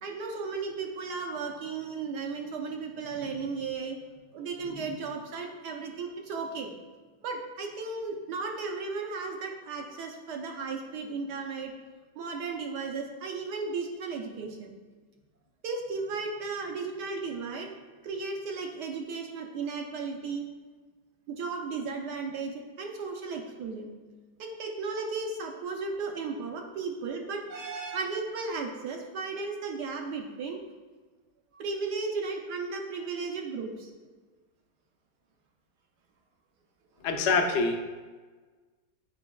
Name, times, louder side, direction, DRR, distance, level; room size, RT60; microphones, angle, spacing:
voice 1, 0.0-4.0 4.3-6.7 7.2-11.7 12.1-14.7 15.6-17.7 18.0-20.5 21.3-23.9 24.4-30.6 31.5-33.9, right 4 dB, 70° right, 2 dB, 1.2 m, -35 dB
voice 2, 37.0-37.8, left 4 dB, 65° left, 3 dB, 0.7 m, -25 dB
8.4 x 4.9 x 2.3 m, 1.4 s
omnidirectional pair, 2.0 m